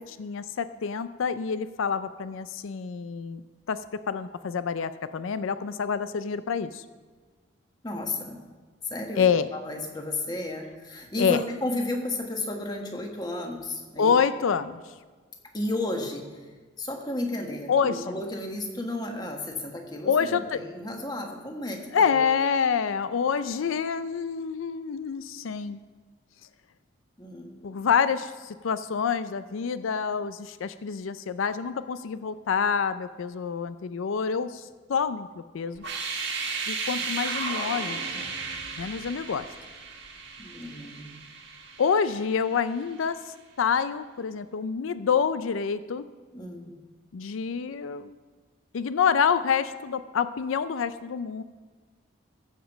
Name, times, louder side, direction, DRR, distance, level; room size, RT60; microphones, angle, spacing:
voice 1, 0.1-3.4 3.7-3.8 4.1-6.8 9.2-9.5 11.2-11.4 14.0-14.8 17.7-18.2 20.1-20.6 21.9-25.8 27.6-35.8 36.7-38.0 38.8-39.5 41.8-43.2 43.6-46.0 47.1-48.1 48.7-51.4, left 6 dB, 85° left, 13 dB, 0.4 m, -27 dB
voice 2, 7.8-8.4 8.8-14.1 15.5-16.5 16.8-22.3 27.2-27.5 40.4-41.2 46.3-46.8, left 2 dB, 20° left, 2 dB, 1.3 m, -33 dB
sound 1, 35.8-42.6, right 4 dB, 60° right, 1.7 m, -34 dB
15.0 x 5.1 x 7.3 m, 1.4 s
head